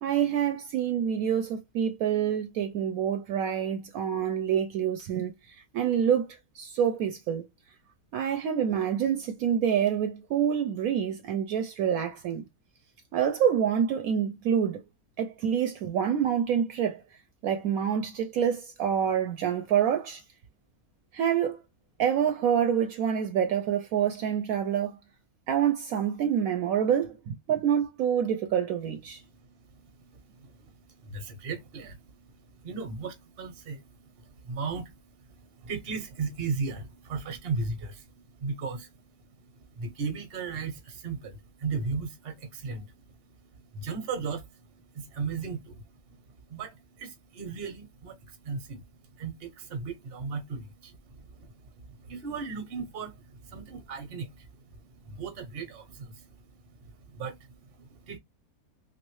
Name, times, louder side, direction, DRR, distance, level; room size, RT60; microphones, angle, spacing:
voice 1, 0.0-6.3 6.5-7.5 8.1-12.5 13.1-14.8 15.2-17.0 17.4-20.2 21.1-21.6 22.0-25.0 25.5-29.2, right 8 dB, 70° right, 1.0 m, -27 dB
voice 2, 29.7-39.0 39.3-43.2 43.4-46.0 46.5-56.4 56.6-58.2, right 4 dB, 45° right, 0.9 m, -37 dB
3.0 x 2.8 x 3.1 m
omnidirectional pair, 1.7 m